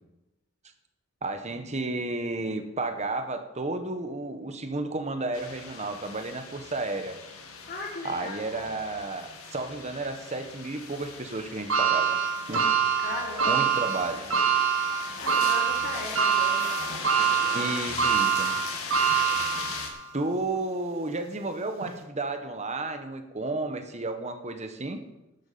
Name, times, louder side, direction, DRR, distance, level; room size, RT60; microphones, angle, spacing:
voice 1, 1.2-7.2 8.0-12.2 12.5-12.7 13.5-14.3 17.5-18.5 20.1-25.0, right 2 dB, 30° right, 7 dB, 1.3 m, -32 dB
sound 1, 5.3-19.9, left 5 dB, 80° left, 2.2 m, -39 dB
voice 2, 7.7-8.7 13.0-13.8 15.2-17.6, left 2 dB, 45° left, -7 dB, 3.6 m, -38 dB
sound 2, 11.7-20.1 20.5-20.6 21.8-21.9, right 7 dB, 75° right, 1.8 m, -25 dB
12.0 x 8.5 x 7.0 m, 0.95 s
head